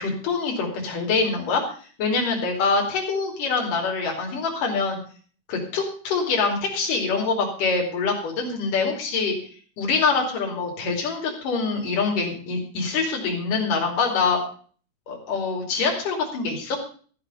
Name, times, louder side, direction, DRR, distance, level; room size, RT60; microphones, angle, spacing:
voice 1, 0.0-1.6 2.0-5.0 5.5-9.4 9.8-14.4 15.1-16.8, left 4 dB, 80° left, 0 dB, 4.3 m, -24 dB
14.5 x 6.9 x 6.7 m, 0.43 s
omnidirectional pair, 3.7 m